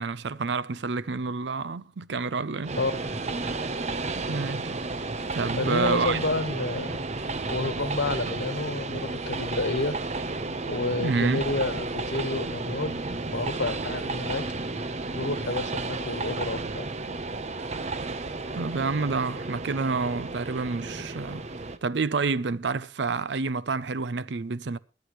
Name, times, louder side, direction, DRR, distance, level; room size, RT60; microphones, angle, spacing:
voice 1, 0.0-2.7 4.3-4.7 5.3-6.2 11.0-11.5 18.5-21.5 21.8-24.8, right 4 dB, 80° right, 0.6 m, -28 dB
Train, 2.6-21.8, right 3 dB, 40° right, 0.8 m, -32 dB
voice 2, 5.6-7.0 7.5-10.0 10.7-13.0 13.3-14.4 15.1-16.9, left 2 dB, 85° left, 1.3 m, -30 dB
21.5 x 8.5 x 3.1 m
head